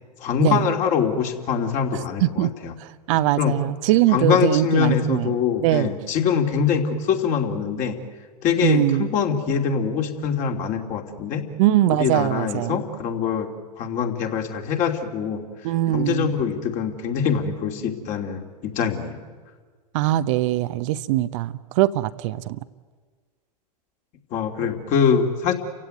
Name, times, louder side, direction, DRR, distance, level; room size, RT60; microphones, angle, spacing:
voice 1, 0.2-2.8 3.4-3.5 4.1-8.0 8.4-11.4 11.9-15.5 15.9-19.2 24.3-25.5, left 7 dB, 35° left, 3 dB, 3.0 m, -23 dB
voice 2, 1.9-2.5 2.8-5.3 5.6-5.9 8.6-9.1 11.6-12.8 15.6-16.4 19.9-22.6, right 14 dB, 50° right, 12 dB, 0.8 m, -22 dB
29.5 x 16.0 x 9.4 m, 1.5 s
hypercardioid pair, 100°, 21 cm